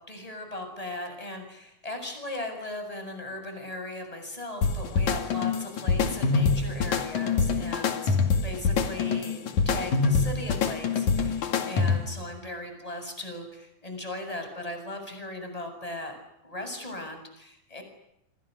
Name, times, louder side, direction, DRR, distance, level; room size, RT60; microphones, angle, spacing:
voice 1, 0.0-8.2 8.4-9.4 9.7-16.2 16.4-17.8, left 1 dB, 10° left, 6 dB, 7.2 m, -38 dB
sound 1, 4.6-12.2, left 5 dB, 55° left, 3.5 m, -25 dB
29.0 x 27.5 x 6.7 m, 0.82 s
omnidirectional pair, 4.3 m